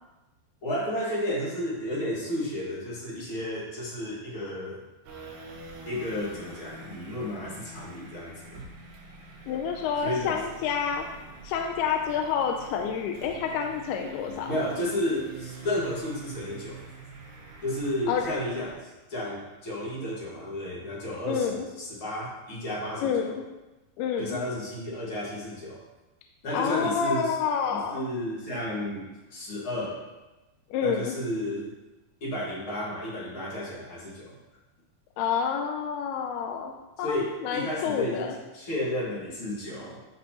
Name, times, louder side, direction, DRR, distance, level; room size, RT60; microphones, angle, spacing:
voice 1, 0.6-4.8 5.9-8.6 10.0-10.4 14.5-16.9 17.6-18.7 19.1-23.3 24.2-25.8 26.4-27.4 27.7-30.0 30.8-31.7 32.2-34.4 37.0-38.3 38.5-40.0, left 1 dB, 45° left, -5 dB, 1.8 m, -32 dB
sound 1, 5.0-18.7, right 2 dB, 85° right, 4.1 m, -45 dB
voice 2, 9.5-11.1 11.4-14.5 18.1-18.4 21.3-21.7 23.0-23.4 24.0-24.4 26.5-28.0 30.7-31.1 35.2-37.2 37.4-38.4, left 7 dB, 80° left, 3 dB, 2.5 m, -28 dB
13.5 x 5.3 x 3.0 m, 1.1 s
omnidirectional pair, 4.7 m